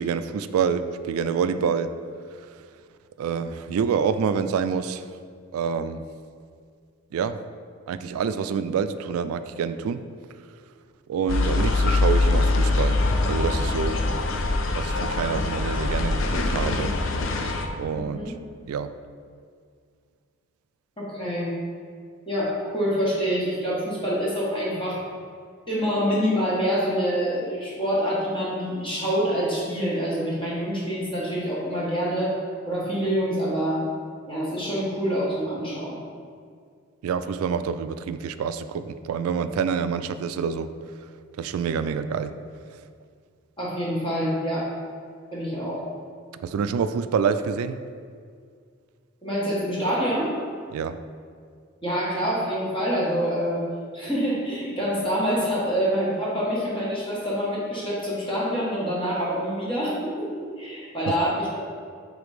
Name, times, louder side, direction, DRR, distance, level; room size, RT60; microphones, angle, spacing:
voice 1, 0.0-1.9 3.2-5.0 5.5-6.0 7.1-7.4 7.9-10.0 11.1-13.0 13.2-14.0 14.8-16.9 17.8-18.2 18.7-18.9 37.0-40.7 41.4-42.3 46.4-47.8 50.7-50.9, right 6 dB, 90° right, 14 dB, 0.3 m, -27 dB
sound 1, 11.3-17.7, left 2 dB, 65° left, 0.5 m, -23 dB
voice 2, 17.9-18.3 21.0-21.5 22.3-25.0 25.7-32.3 32.7-33.8 34.3-36.0 43.6-44.7 45.3-45.8 49.2-50.3 51.8-53.7 53.9-61.6, equal, 25° left, -6 dB, 1.4 m, -26 dB
5.0 x 4.0 x 4.9 m, 2.1 s
head